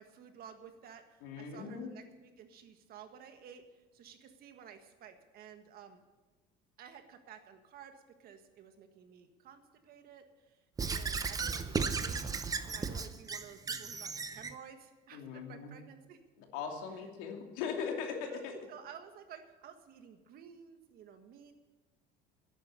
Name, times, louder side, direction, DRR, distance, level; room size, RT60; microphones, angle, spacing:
voice 1, 0.0-3.6 3.9-6.0 6.8-10.6 10.9-16.2 18.3-18.4 18.7-21.5, right 8 dB, 50° right, 7 dB, 1.6 m, -53 dB
voice 2, 1.2-1.9 15.1-15.8 16.5-18.6, left 6 dB, 90° left, 2 dB, 2.7 m, -39 dB
Squeak / Writing, 10.8-14.5, right 5 dB, 20° right, 0.7 m, -35 dB
11.5 x 9.2 x 8.2 m, 1.2 s
cardioid pair, 135°, 20 cm